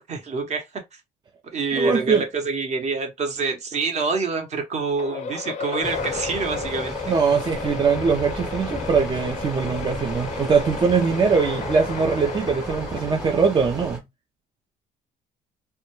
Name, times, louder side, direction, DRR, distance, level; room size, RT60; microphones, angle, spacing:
voice 1, 0.1-0.7 1.5-7.1, right 4 dB, 40° right, 0.8 m, -26 dB
voice 2, 1.7-2.2 7.1-14.0, right 5 dB, 25° right, 0.4 m, -22 dB
sound 1, 5.0-13.7, left 6 dB, 40° left, 0.4 m, -34 dB
sound 2, 5.8-14.0, right 1 dB, 5° right, 0.9 m, -34 dB
2.2 x 2.1 x 2.9 m
cardioid pair, 110°, 17 cm